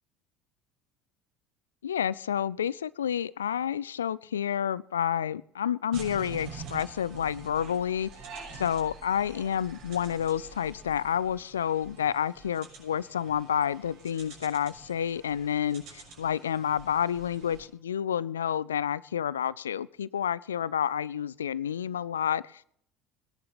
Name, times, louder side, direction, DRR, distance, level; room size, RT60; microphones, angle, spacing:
voice 1, 1.8-8.1 8.5-22.6, left 9 dB, 75° left, 21 dB, 0.4 m, -29 dB
sound 1, 5.9-17.7, right 4 dB, 55° right, 6.6 m, -47 dB
21.0 x 11.0 x 4.2 m, 0.65 s
figure-of-eight pair, 65°, 0 cm